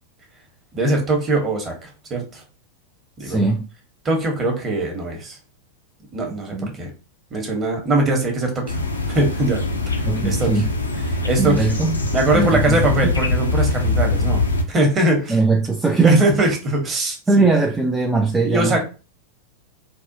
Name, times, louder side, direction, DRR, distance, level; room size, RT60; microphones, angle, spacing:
voice 1, 0.7-2.4 3.2-3.4 4.0-5.4 6.1-6.9 7.3-8.8 9.1-9.6 9.9-10.6 11.1-11.7 12.1-14.4 14.7-15.4 16.0-17.5 18.4-18.8, right 2 dB, 25° right, 0.9 m, -21 dB
voice 2, 3.2-3.6 6.5-6.8 10.1-10.7 11.4-12.0 12.3-13.1 15.3-16.3 17.3-18.8, right 3 dB, 10° right, 0.3 m, -19 dB
sound 1, 8.7-14.6, left 2 dB, 80° left, 0.5 m, -22 dB
3.5 x 2.3 x 2.6 m
figure-of-eight pair, 90°, 0 cm